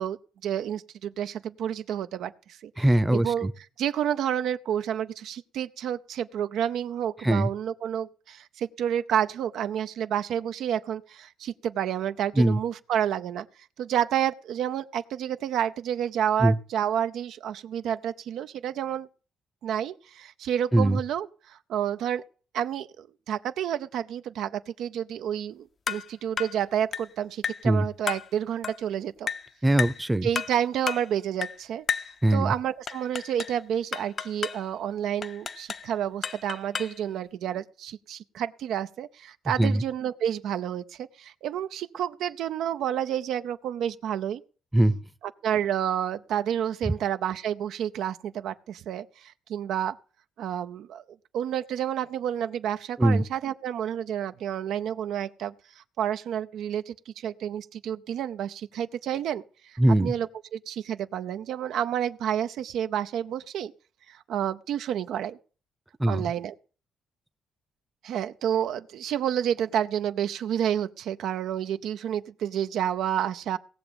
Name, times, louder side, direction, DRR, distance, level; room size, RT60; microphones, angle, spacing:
voice 1, 0.0-2.7 3.1-3.5 3.8-13.5 13.8-19.1 19.6-22.2 22.5-29.3 30.2-31.8 32.3-44.4 45.2-50.0 50.4-51.0 51.3-63.7 64.1-65.4 66.1-66.5 68.0-73.6, right 9 dB, 80° right, 0.6 m, -30 dB
voice 2, 2.8-3.5 7.2-7.5 12.4-12.6 16.4-16.5 20.7-21.0 27.6-27.8 29.6-30.3 32.2-32.5 39.6-39.8 44.7-45.0 53.0-53.2 59.8-60.1 66.0-66.3, right 1 dB, 10° right, 0.7 m, -21 dB
sound 1, 25.9-26.1 26.4-26.6 26.9-27.1 27.4-27.7 28.1-28.3 28.6-28.8 29.3-29.5 29.8-30.0 30.3-30.6 30.9-31.1 31.4-31.6 31.9-32.1 32.9-33.6 33.9-34.6 35.2-35.9 36.2-37.0, left 6 dB, 45° left, 0.6 m, -32 dB
17.5 x 6.9 x 6.9 m
cardioid pair, 90°, 0 cm